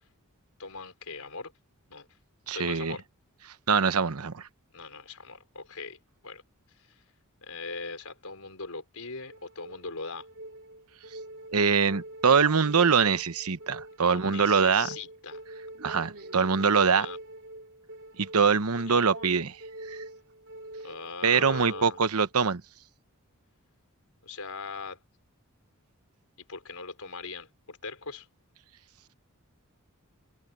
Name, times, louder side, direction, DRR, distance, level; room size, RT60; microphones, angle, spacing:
voice 1, 0.6-1.5 1.9-2.1 2.5-3.0 4.7-6.4 6.8-7.0 7.4-10.3 14.0-15.4 16.3-17.2 18.9-19.0 20.8-22.0 24.2-25.0 26.5-28.3, left 4 dB, 75° left, 4.8 m, -40 dB
voice 2, 2.5-3.0 3.7-4.5 11.5-14.9 15.8-17.1 18.2-19.6 19.9-20.0 21.2-22.6, right 5 dB, 85° right, 1.0 m, -23 dB
sound 1, 9.3-22.3, right 1 dB, 60° right, 3.8 m, -44 dB
head